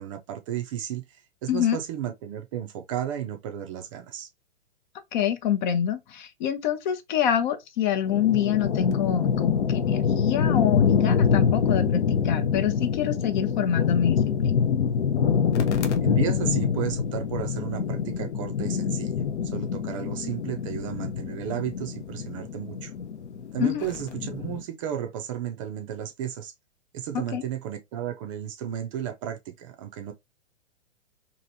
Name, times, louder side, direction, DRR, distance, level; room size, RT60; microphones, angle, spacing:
voice 1, 0.0-4.3 16.0-19.2 19.4-22.9 23.5-26.5 26.9-30.1, right 10 dB, 30° right, 0.4 m, -33 dB
voice 2, 5.1-14.7 23.6-23.9 27.3-27.4, left 9 dB, 40° left, 0.6 m, -26 dB
sound 1, 8.0-24.6, left 7 dB, 70° left, 0.8 m, -25 dB
2.9 x 2.6 x 2.6 m
hypercardioid pair, 120°, 36 cm